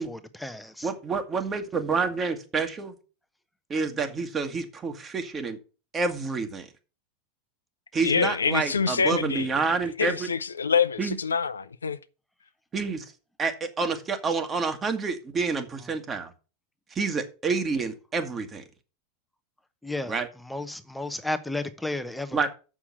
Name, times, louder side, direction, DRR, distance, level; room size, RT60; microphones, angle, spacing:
voice 1, 0.0-0.9 19.8-20.1 20.5-22.5, left 2 dB, 5° left, 0.8 m, -33 dB
voice 2, 0.8-2.9 3.7-5.6 5.9-6.7 7.9-10.3 11.0-11.2 12.7-13.0 13.4-16.3 16.9-18.6 20.1-20.3 22.3-22.5, right 4 dB, 25° right, 1.7 m, -28 dB
voice 3, 8.0-9.5 10.0-12.0, left 5 dB, 85° left, 0.5 m, -26 dB
7.1 x 6.4 x 5.9 m
hypercardioid pair, 90°, 0 cm